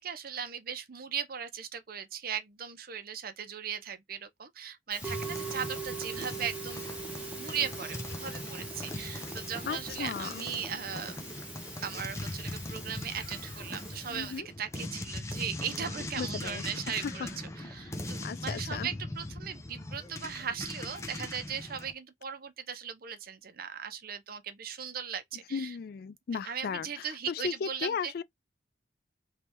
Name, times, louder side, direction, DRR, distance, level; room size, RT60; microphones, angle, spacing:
voice 1, 0.0-6.8 7.4-11.1 11.8-17.3 17.6-25.8 26.4-28.2, right 7 dB, 55° right, 0.7 m, -38 dB
Musical instrument, 4.9-14.4, right 4 dB, 10° right, 1.3 m, -42 dB
sound 1, 5.0-21.9, left 1 dB, 15° left, 0.7 m, -40 dB
voice 2, 9.7-10.4 14.1-14.5 16.2-17.3 17.8-18.0 18.2-18.9 25.5-28.2, left 6 dB, 55° left, 0.3 m, -36 dB
3.4 x 3.2 x 2.9 m
head